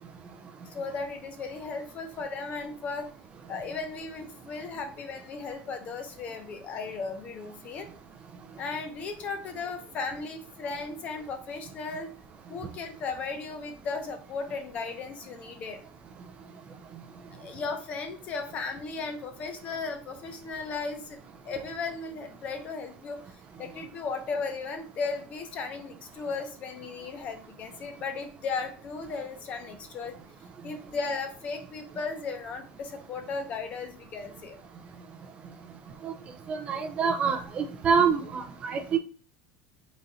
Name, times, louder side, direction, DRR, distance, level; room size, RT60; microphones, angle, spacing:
voice 1, 0.6-3.1 3.5-7.9 8.6-12.1 12.5-15.8 17.3-23.2 23.6-30.2 30.6-34.6, left 4 dB, 30° left, 6 dB, 0.7 m, -36 dB
voice 2, 36.5-39.0, right 6 dB, 25° right, 6 dB, 0.3 m, -26 dB
3.9 x 2.4 x 4.1 m, 0.38 s
cardioid pair, 160°, 5 cm